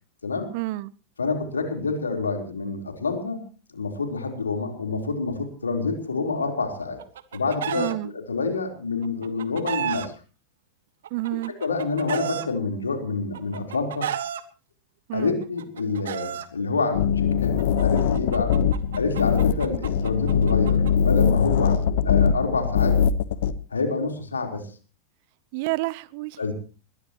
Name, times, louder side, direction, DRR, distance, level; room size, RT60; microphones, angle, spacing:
voice 1, 0.5-0.9 7.7-8.1 11.1-11.5 15.1-15.4 25.5-26.4, right 19 dB, 50° right, 0.9 m, -29 dB
voice 2, 1.2-3.4 3.7-7.0 7.3-10.1 11.6-14.1 15.1-18.6 19.0-23.0 23.7-24.7 26.4-26.5, left 4 dB, 80° left, 4.1 m, -27 dB
Chicken rooster, 6.8-7.9 9.0-10.1 11.0-12.5 13.3-14.4 15.4-16.5 17.6-20.9, right 10 dB, 65° right, 1.6 m, -32 dB
sound 1, 16.9-23.5, left 7 dB, 60° left, 1.1 m, -21 dB
21.5 x 21.0 x 3.1 m
figure-of-eight pair, 90°, 0 cm